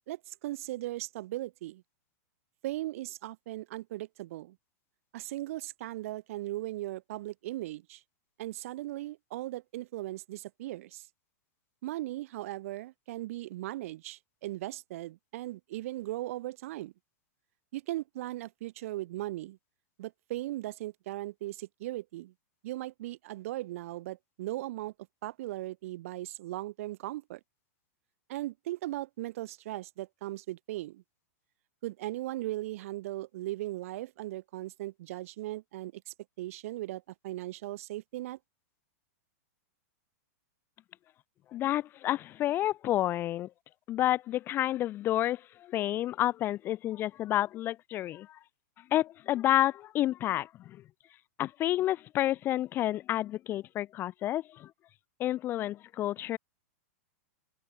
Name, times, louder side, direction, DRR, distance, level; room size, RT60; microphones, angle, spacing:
voice 1, 0.1-1.8 2.6-4.6 5.1-8.0 8.4-11.1 11.8-16.9 17.7-19.6 20.0-22.3 22.6-24.9 25.2-27.4 28.3-31.0 31.8-38.4, right 16 dB, 60° right, 0.9 m, -38 dB
voice 2, 41.5-43.5 43.9-48.4 48.9-50.8 51.4-54.7 55.2-56.4, left 13 dB, 25° left, 0.3 m, -30 dB
hypercardioid pair, 135°, 8 cm